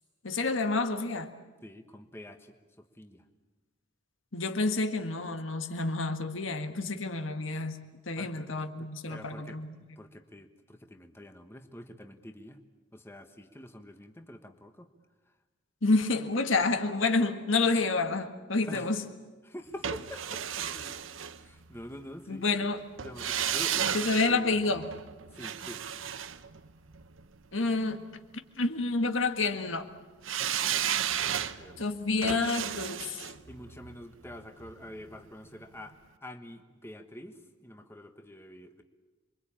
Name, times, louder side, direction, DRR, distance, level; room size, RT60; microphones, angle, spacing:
voice 1, 0.2-1.3 4.3-7.8 8.1-9.7 15.8-19.0 22.3-22.8 23.9-24.9 27.5-28.0 28.6-29.9 31.8-33.2, left 3 dB, 80° left, 1.8 m, -29 dB
voice 2, 1.6-3.2 8.2-8.5 8.8-9.6 10.0-12.6 12.9-14.9 18.6-19.0 19.4-20.5 20.7-20.9 21.4-22.7 23.0-24.6 25.3-26.0 30.6-31.8 33.5-38.8, left 1 dB, 10° left, 1.3 m, -46 dB
sound 1, 19.8-21.9 23.0-27.2 30.2-35.2 35.5-35.6, right 9 dB, 80° right, 0.9 m, -34 dB
27.0 x 23.0 x 8.8 m
head